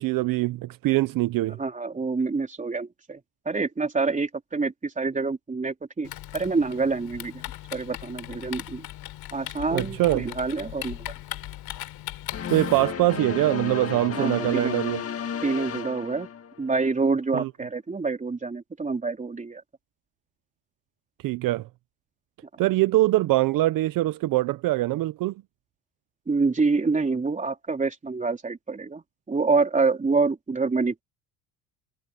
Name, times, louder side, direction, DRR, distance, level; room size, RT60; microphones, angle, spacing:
voice 1, 0.0-1.6 9.7-10.3 12.5-15.0 17.3-17.5 21.2-21.7 22.6-25.3, right 17 dB, 55° right, 0.8 m, -23 dB
voice 2, 1.6-7.4 7.7-8.9 9.3-11.1 14.2-14.8 15.4-16.3 16.6-19.6 26.3-31.0, right 4 dB, 20° right, 4.0 m, -27 dB
Typing, 6.0-12.9, left 15 dB, 65° left, 4.0 m, -38 dB
sound 1, 12.3-16.8, left 8 dB, 35° left, 2.1 m, -33 dB
supercardioid pair, 105°, 39 cm